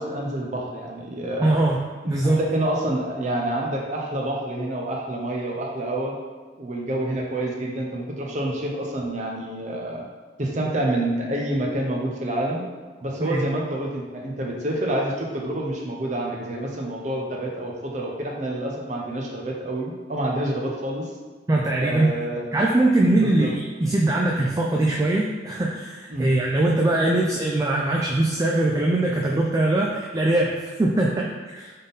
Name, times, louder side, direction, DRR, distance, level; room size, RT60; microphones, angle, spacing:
voice 1, 0.0-1.5 2.0-6.1 6.6-10.1 10.4-12.6 13.0-21.1 21.8-22.6 23.2-23.5 26.1-26.4, right 1 dB, 40° right, -1 dB, 0.7 m, -28 dB
voice 2, 1.4-1.8 2.1-2.5 13.2-13.4 21.5-22.2 22.5-31.7, right 2 dB, 20° right, -2 dB, 0.3 m, -22 dB
3.7 x 3.6 x 4.0 m, 1.4 s
head